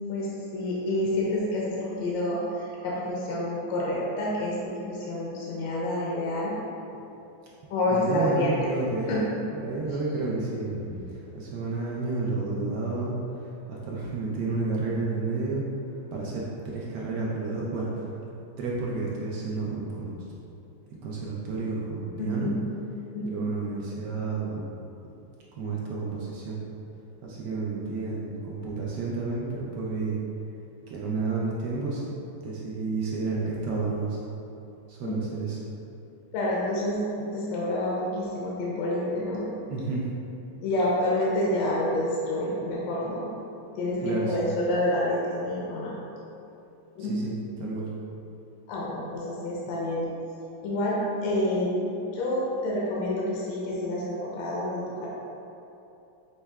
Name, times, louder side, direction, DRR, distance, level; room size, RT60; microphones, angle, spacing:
voice 1, 0.1-6.5 7.7-8.6 9.1-9.3 10.9-11.0 22.2-22.6 23.1-23.5 35.0-35.2 36.3-39.5 40.6-43.3 43.8-45.9 47.0-47.2 48.7-50.1 50.6-55.1, left 1 dB, 75° left, -5 dB, 1.2 m, -28 dB
voice 2, 7.9-9.1 9.6-10.7 11.1-13.2 13.7-15.6 16.1-18.1 18.6-20.2 21.0-22.5 23.2-24.6 25.5-26.6 27.2-30.2 30.9-34.2 34.9-35.6 39.7-40.1 44.0-44.5 47.0-47.3 47.6-47.9, right 3 dB, 75° right, -4 dB, 1.0 m, -31 dB
5.5 x 3.1 x 2.3 m, 2.9 s
omnidirectional pair, 2.2 m